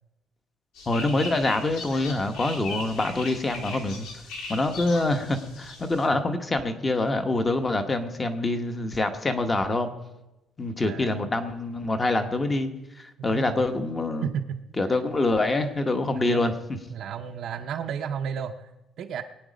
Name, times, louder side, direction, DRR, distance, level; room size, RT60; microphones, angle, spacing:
sound 1, 0.8-6.1, left 3 dB, 85° left, 2.6 m, -39 dB
voice 1, 0.9-4.1 4.5-9.9 10.6-12.7 12.9-14.3 14.8-16.5, left 2 dB, 15° left, 8 dB, 1.0 m, -25 dB
voice 2, 10.8-11.2 13.2-13.6 14.2-14.6 16.3-16.6 16.9-18.7 19.0-19.2, right 7 dB, 50° right, 3 dB, 0.7 m, -32 dB
21.5 x 9.2 x 5.1 m, 1.0 s
cardioid pair, 180°, 0 cm